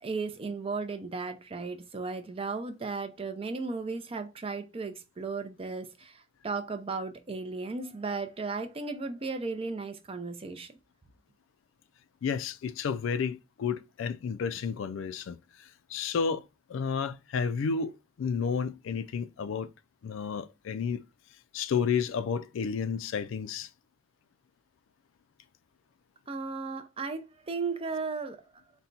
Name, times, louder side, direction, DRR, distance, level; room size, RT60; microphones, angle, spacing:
voice 1, 0.0-10.7 26.3-28.4, right 4 dB, 30° right, 0.5 m, -35 dB
voice 2, 12.2-16.4 16.7-19.7 20.0-21.0 21.5-23.7, left 6 dB, 70° left, 0.3 m, -31 dB
4.2 x 2.2 x 3.8 m
head